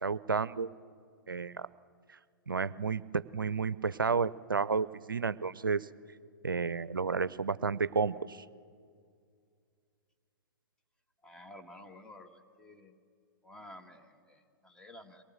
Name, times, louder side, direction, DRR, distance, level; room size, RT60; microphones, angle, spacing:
voice 1, 0.0-0.7 1.3-1.7 2.5-5.9 6.4-8.4, right 5 dB, 80° right, 18 dB, 0.5 m, -31 dB
voice 2, 11.2-12.9 13.4-15.2, left 1 dB, 5° left, 5 dB, 1.6 m, -52 dB
23.5 x 18.5 x 7.5 m, 2.2 s
figure-of-eight pair, 110°, 11 cm